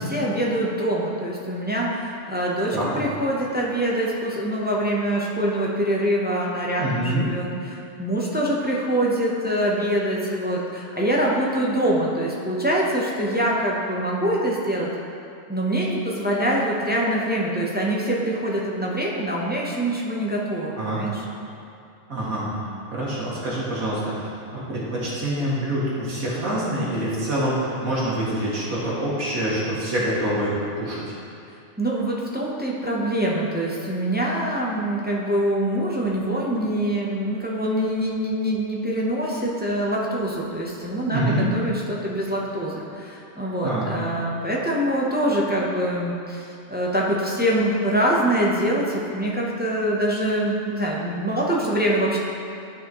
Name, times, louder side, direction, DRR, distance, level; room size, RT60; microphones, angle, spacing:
voice 1, 0.0-14.9 15.5-21.2 31.8-52.2, right 1 dB, 15° right, -4 dB, 0.4 m, -24 dB
voice 2, 6.8-7.3 20.7-21.0 22.1-31.0 41.1-41.5 43.6-43.9, right 1 dB, 90° right, -7 dB, 2.1 m, -26 dB
10.5 x 4.9 x 3.0 m, 2.6 s
omnidirectional pair, 1.4 m